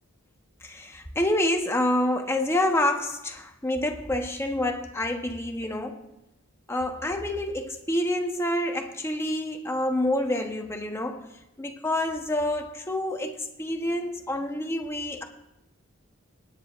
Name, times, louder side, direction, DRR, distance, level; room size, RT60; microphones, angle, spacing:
voice 1, 0.6-6.0 6.7-11.2 11.6-15.2, left 1 dB, 10° left, 0.9 m, -27 dB
26.0 x 9.9 x 2.5 m
head